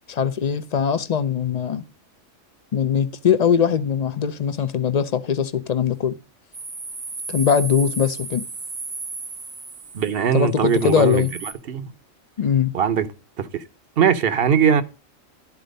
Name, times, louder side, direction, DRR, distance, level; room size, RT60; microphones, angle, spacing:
voice 1, 0.1-1.8 2.7-6.2 7.3-8.4 10.3-11.3 12.4-12.7, left 7 dB, 50° left, 0.5 m, -21 dB
sound 1, 6.5-11.5, right 3 dB, 15° right, 0.6 m, -34 dB
voice 2, 9.9-11.3 11.7-11.9 12.7-13.1 13.4-13.6 14.0-14.8, right 8 dB, 55° right, 0.9 m, -20 dB
12.0 x 4.4 x 5.1 m
omnidirectional pair, 1.3 m